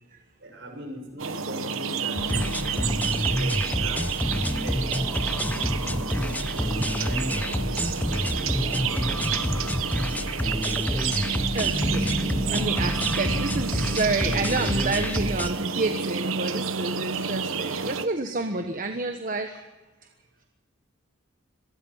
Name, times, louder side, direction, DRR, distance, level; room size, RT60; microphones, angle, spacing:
voice 1, 0.4-4.9 5.7-10.5, equal, 60° right, 2 dB, 6.7 m, -41 dB
sound 1, 1.2-18.1, right 6 dB, 75° right, 1.2 m, -30 dB
sound 2, 2.2-15.5, left 1 dB, 10° left, 0.7 m, -28 dB
voice 2, 9.7-10.0 10.7-10.8 11.5-19.7, right 3 dB, 40° right, 6 dB, 1.3 m, -30 dB
25.5 x 19.0 x 5.7 m, 1.2 s
head